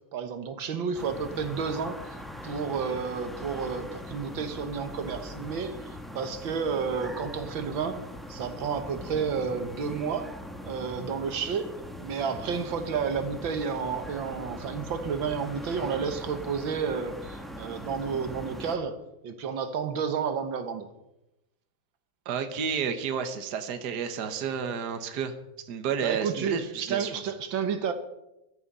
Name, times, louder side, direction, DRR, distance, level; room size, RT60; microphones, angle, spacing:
voice 1, 0.1-8.0 8.3-10.3 10.6-11.7 12.0-19.0 19.2-20.9 26.0-27.9, right 6 dB, 75° right, 9 dB, 1.9 m, -31 dB
sound 1, 0.9-18.8, equal, ahead, 1.3 m, -41 dB
voice 2, 22.3-25.3 25.6-27.1, right 6 dB, 60° right, 8 dB, 1.7 m, -31 dB
14.5 x 13.0 x 5.4 m, 0.89 s
omnidirectional pair, 2.1 m